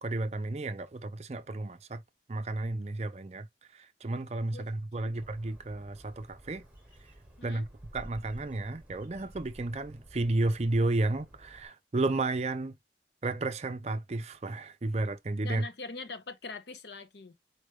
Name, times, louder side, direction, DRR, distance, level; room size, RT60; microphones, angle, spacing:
voice 1, 0.0-2.0 2.3-3.5 4.0-6.6 7.4-7.7 7.9-12.7 13.2-15.6, right 2 dB, 35° right, 0.5 m, -32 dB
Bird, 5.2-11.7, equal, 10° right, 1.7 m, -53 dB
voice 2, 15.4-17.3, left 3 dB, 75° left, 0.7 m, -42 dB
4.4 x 3.3 x 3.1 m
head